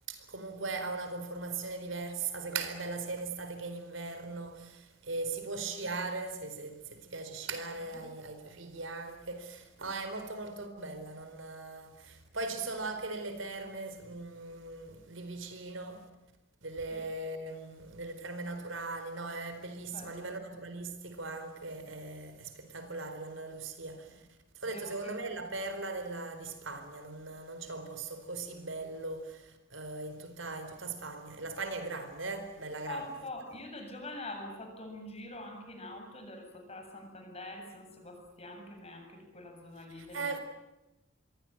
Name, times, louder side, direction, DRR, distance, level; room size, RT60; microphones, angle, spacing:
voice 1, 0.1-16.1 16.6-24.2 24.5-33.1 39.9-40.4, right 3 dB, 85° right, 4.3 m, -39 dB
voice 2, 19.9-20.3 24.6-25.2 32.9-40.4, left 1 dB, 35° left, 7.7 m, -45 dB
27.5 x 23.0 x 9.1 m
head